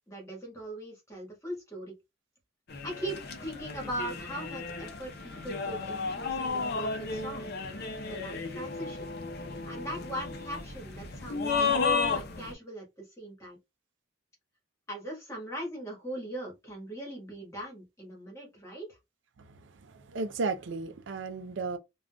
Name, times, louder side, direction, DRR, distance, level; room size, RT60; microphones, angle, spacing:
voice 1, 0.1-1.9 2.8-7.6 8.1-9.1 9.6-11.8 12.1-12.8 13.2-13.6 14.9-19.0, right 1 dB, 15° left, 1.3 m, -40 dB
sound 1, 2.7-12.5, left 4 dB, 55° left, 0.6 m, -33 dB
voice 2, 19.4-21.8, right 4 dB, 65° right, 0.4 m, -35 dB
3.7 x 2.3 x 2.3 m
head